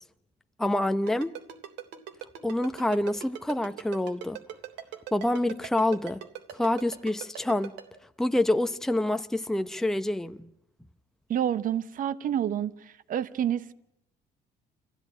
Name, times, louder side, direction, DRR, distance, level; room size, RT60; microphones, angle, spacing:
voice 1, 0.6-1.3 2.4-4.4 5.1-6.2 6.5-7.7 8.2-10.5, left 1 dB, 5° left, 0.8 m, -27 dB
Ringtone, 1.1-7.8, right 11 dB, 85° right, 3.3 m, -39 dB
voice 2, 11.3-12.7 13.1-13.7, right 10 dB, 55° right, 1.1 m, -28 dB
27.5 x 15.5 x 10.0 m
cardioid pair, 110°, 17 cm